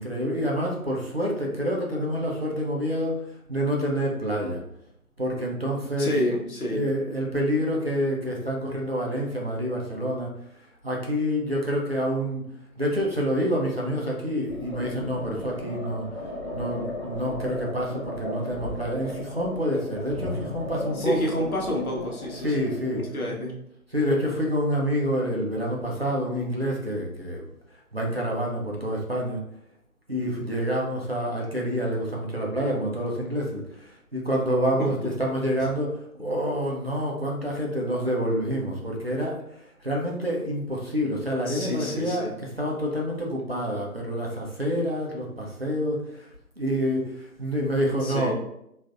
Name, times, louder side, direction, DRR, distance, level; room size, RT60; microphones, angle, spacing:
voice 1, 0.0-4.6 5.2-6.3 6.6-10.3 10.8-12.4 12.8-16.1 16.5-21.4 22.3-23.4 23.9-27.4 27.9-29.4 30.1-39.4 39.8-46.3 46.6-48.3, equal, 45° right, -2 dB, 0.5 m, -27 dB
voice 2, 6.0-6.8 20.9-23.6 34.8-35.1 41.5-42.3 48.0-48.3, equal, 65° left, -1 dB, 0.9 m, -29 dB
sound 1, 14.5-23.0, left 2 dB, 45° left, 0.9 m, -36 dB
3.3 x 2.5 x 2.4 m, 0.77 s
figure-of-eight pair, 155°, 46 cm